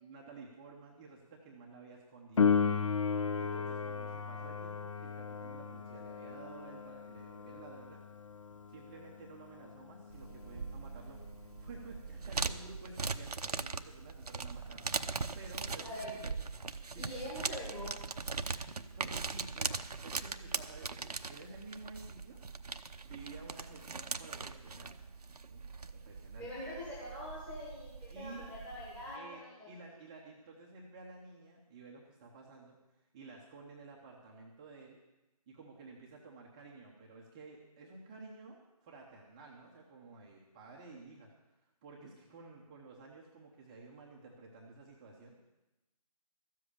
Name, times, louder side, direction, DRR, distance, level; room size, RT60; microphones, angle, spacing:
voice 1, 0.0-2.5 2.8-2.9 3.4-8.0 8.7-14.9 15.3-16.5 16.9-17.2 18.7-22.4 23.0-24.9 25.5-26.5 28.1-28.5 29.1-32.8 33.1-35.0 35.5-41.3 41.8-45.3, right 3 dB, 10° right, -2 dB, 0.7 m, -52 dB
Piano, 2.4-12.8 20.3-20.4, left 6 dB, 55° left, 0.7 m, -36 dB
sound 1, 10.1-29.2, right 4 dB, 80° right, 0.8 m, -41 dB
voice 2, 15.8-16.2 16.9-17.9 26.4-29.7, left 1 dB, 5° left, -7 dB, 1.4 m, -44 dB
13.5 x 7.7 x 8.4 m, 1.0 s
figure-of-eight pair, 160°, 20 cm